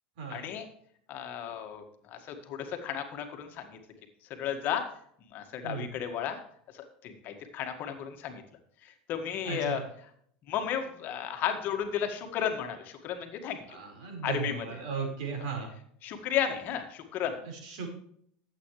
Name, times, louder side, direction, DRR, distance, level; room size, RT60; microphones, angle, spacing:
voice 1, 0.3-0.7 1.1-3.8 4.3-4.8 5.3-6.4 6.7-8.4 8.8-9.8 10.5-13.6 14.2-14.7 16.0-17.3, left 9 dB, 50° left, 5 dB, 1.9 m, -33 dB
voice 2, 9.4-9.8 13.7-15.7 17.4-17.9, right 5 dB, 75° right, 1 dB, 4.8 m, -36 dB
12.5 x 8.4 x 3.3 m, 0.64 s
supercardioid pair, 110°, 4 cm